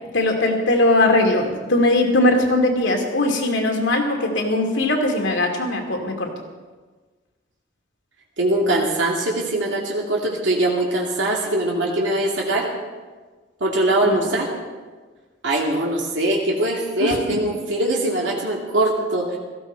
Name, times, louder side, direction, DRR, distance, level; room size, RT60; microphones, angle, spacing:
voice 1, 0.1-6.3 14.0-14.3 17.0-17.4, left 2 dB, 80° left, 2 dB, 2.5 m, -20 dB
voice 2, 8.4-12.7 13.6-14.6 15.4-19.4, right 1 dB, 80° right, -2 dB, 2.3 m, -22 dB
17.0 x 14.5 x 4.5 m, 1.4 s
head